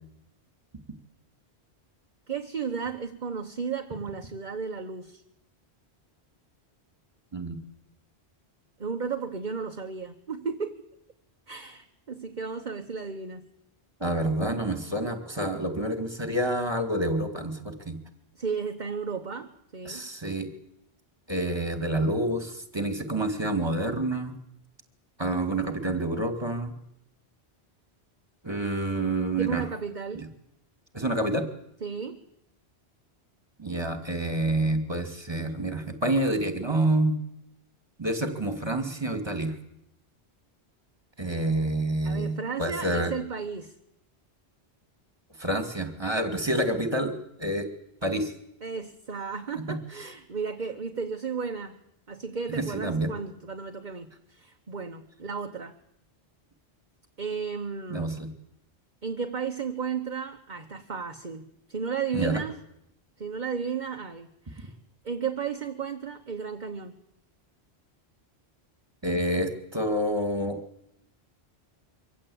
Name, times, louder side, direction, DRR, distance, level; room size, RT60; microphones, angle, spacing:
voice 1, 2.3-5.2 8.8-10.8 11.5-13.5 18.3-20.0 29.4-30.3 31.8-32.2 42.0-43.7 48.6-51.8 52.1-55.7 57.2-58.1 59.0-62.5 63.2-64.7 65.0-67.0, right 5 dB, 45° right, 5 dB, 1.3 m, -34 dB
voice 2, 14.0-18.0 19.9-20.5 21.3-24.3 25.2-26.7 28.4-29.7 30.1-30.3 30.9-31.5 33.6-37.2 38.0-39.6 41.2-43.1 45.4-47.1 47.4-47.7 48.0-48.3 49.7-49.8 52.6-53.1 57.9-58.3 62.1-62.4 69.0-70.6, right 1 dB, 25° right, 7 dB, 2.4 m, -28 dB
24.0 x 16.0 x 8.7 m, 0.79 s
omnidirectional pair, 1.1 m